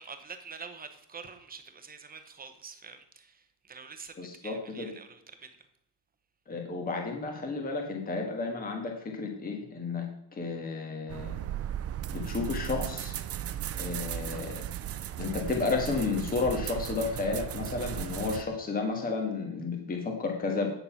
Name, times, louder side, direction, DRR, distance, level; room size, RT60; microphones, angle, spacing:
voice 1, 0.0-5.6, right 5 dB, 20° right, 8 dB, 0.8 m, -46 dB
voice 2, 4.2-4.9 6.5-11.4 12.1-13.1 13.8-14.6 15.2-20.7, left 4 dB, 20° left, 2 dB, 1.4 m, -32 dB
sound 1, 11.1-18.4, right 11 dB, 35° right, 0.4 m, -36 dB
9.1 x 6.7 x 5.7 m, 0.77 s
cardioid pair, 180°, 42 cm